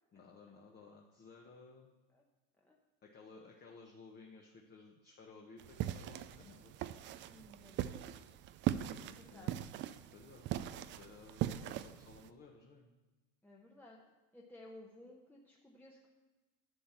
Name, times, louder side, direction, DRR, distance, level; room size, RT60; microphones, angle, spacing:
voice 1, 0.1-1.9 3.0-6.7 9.3-9.5 10.1-10.5 10.7-12.9, left 4 dB, 25° left, 1 dB, 1.0 m, -57 dB
sound 1, 5.6-12.3, right 12 dB, 30° right, 0.4 m, -40 dB
voice 2, 7.3-8.4 9.0-9.7 13.4-14.0 14.3-16.1, left 1 dB, 5° left, -2 dB, 0.9 m, -57 dB
11.0 x 7.4 x 4.4 m, 1.2 s
supercardioid pair, 120°, 37 cm